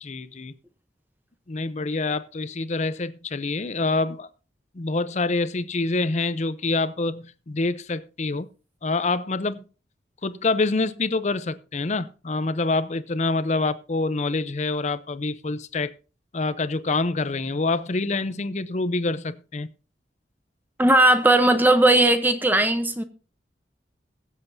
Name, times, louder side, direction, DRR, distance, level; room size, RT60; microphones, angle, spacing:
voice 1, 0.0-0.5 1.5-4.3 4.7-8.5 8.8-9.6 10.2-15.9 16.3-19.7, left 3 dB, 40° left, 0.6 m, -26 dB
voice 2, 20.8-23.0, right 1 dB, 10° right, 0.8 m, -18 dB
21.5 x 7.4 x 2.7 m
head